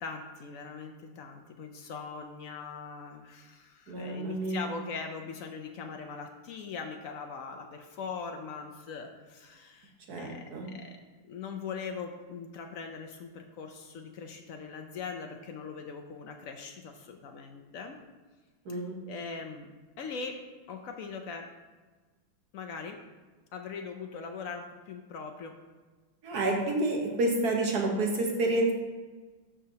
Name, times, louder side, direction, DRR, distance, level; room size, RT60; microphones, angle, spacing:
voice 1, 0.0-10.4 10.7-11.0 11.3-18.0 18.7-18.8 19.1-19.7 20.0-20.4 20.7-21.5 22.5-23.0 23.5-25.6, left 5 dB, 80° left, 4 dB, 0.7 m, -41 dB
voice 2, 3.9-4.7 10.1-10.7 18.6-19.0 26.2-28.7, right 2 dB, 55° right, 0 dB, 1.5 m, -29 dB
12.5 x 4.9 x 2.8 m, 1.3 s
omnidirectional pair, 2.1 m